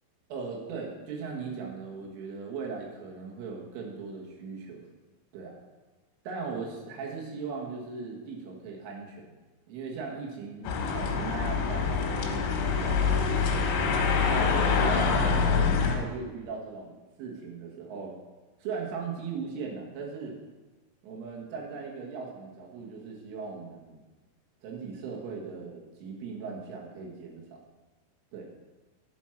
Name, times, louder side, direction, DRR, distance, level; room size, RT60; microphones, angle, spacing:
voice 1, 0.3-4.8 5.3-5.6 6.3-9.3 9.7-13.6 14.2-18.1 18.6-20.4 21.0-24.0 24.6-27.6 28.3-28.5, right 5 dB, 80° right, -1 dB, 4.0 m, -38 dB
sound 1, 10.6-16.0, left 5 dB, 90° left, 3.9 m, -25 dB
11.0 x 5.9 x 6.2 m, 1.2 s
omnidirectional pair, 5.8 m